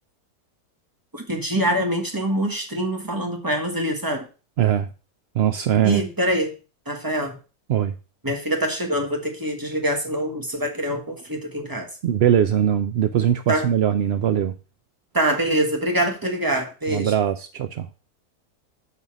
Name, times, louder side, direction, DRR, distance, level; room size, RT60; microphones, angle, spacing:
voice 1, 1.1-4.3 5.8-6.5 6.9-7.4 8.2-11.9 13.5-13.7 15.1-17.1, right 1 dB, 15° right, 1.5 m, -24 dB
voice 2, 4.6-4.9 5.3-6.0 7.7-7.9 12.0-14.5 16.9-17.9, right 10 dB, 70° right, 0.6 m, -21 dB
6.4 x 5.5 x 6.1 m
omnidirectional pair, 1.7 m